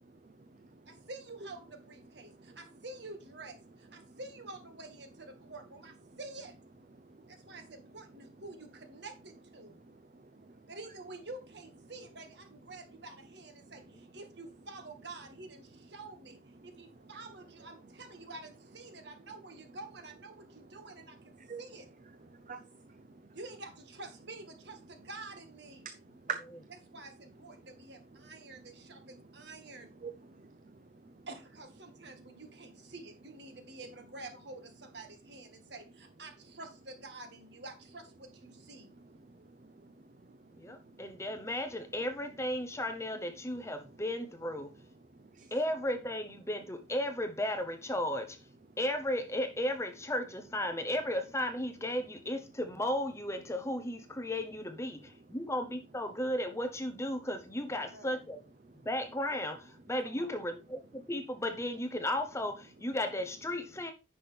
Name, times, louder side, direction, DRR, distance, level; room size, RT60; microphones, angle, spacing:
voice 1, 0.2-0.9 2.2-2.6 4.1-4.2 7.0-7.6 9.9-10.6 13.6-13.7 16.6-16.7 21.4-21.6 22.3-23.2 25.8-26.7 30.0-31.2 39.2-41.0 45.2-45.5, right 6 dB, 40° right, 0.6 m, -47 dB
voice 2, 0.9-6.5 7.3-9.8 10.7-21.9 23.3-25.9 26.9-29.9 31.3-38.9 57.7-58.2 60.0-60.3, right 2 dB, 60° right, 1.8 m, -48 dB
voice 3, 40.6-44.7 45.5-48.4 48.8-58.4 58.8-63.9, left 1 dB, 15° left, 0.8 m, -35 dB
9.8 x 6.0 x 3.4 m
head